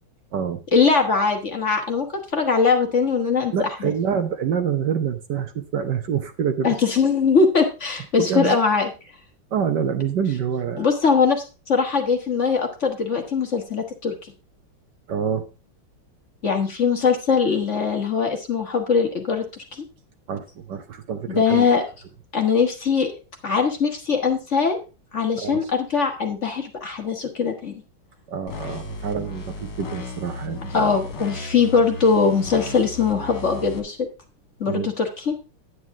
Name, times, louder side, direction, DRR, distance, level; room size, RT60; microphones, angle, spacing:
voice 1, 0.7-2.1 2.3-3.5 3.8-3.9 6.6-8.9 10.8-14.1 16.4-19.8 21.3-21.8 22.3-23.1 23.4-24.8 25.1-27.8 30.7-34.1 34.6-35.3, left 5 dB, 40° left, 4 dB, 1.6 m, -21 dB
voice 2, 3.5-6.8 8.2-8.6 9.5-10.9 15.1-15.4 20.3-21.7 23.5-23.6 25.4-25.6 28.3-31.0 34.7-34.9, right 7 dB, 65° right, 9 dB, 1.4 m, -26 dB
sound 1, 28.5-33.8, left 2 dB, 60° left, 2.5 m, -35 dB
9.7 x 9.1 x 3.6 m, 0.30 s
omnidirectional pair, 2.2 m